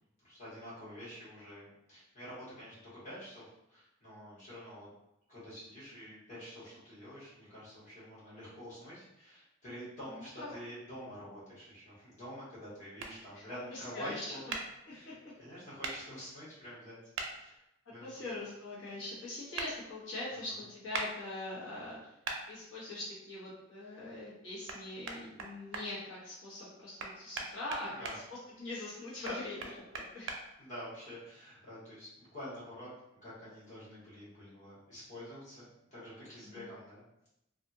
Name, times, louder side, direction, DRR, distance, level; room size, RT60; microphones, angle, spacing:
voice 1, 0.2-4.9 5.3-14.5 14.9-17.0 17.4-17.6 17.9-18.3 20.5-20.6 27.9-28.2 30.6-37.0, equal, 40° left, -10 dB, 1.5 m, -48 dB
voice 2, 10.1-10.6 13.3-13.4 13.7-14.2 14.9-15.2 18.0-22.0 22.5-28.2 28.6-30.3 36.5-36.7, left 2 dB, 90° left, -8 dB, 1.0 m, -42 dB
sound 1, 13.0-13.1 14.5-14.6 15.8-16.0 17.1-17.3 19.6-19.7 20.9-21.1 22.2-22.4 24.7-24.8 25.1-25.8 27.0-28.2 29.2-30.4, right 4 dB, 85° right, 0.4 m, -38 dB
2.7 x 2.4 x 2.6 m, 0.83 s
head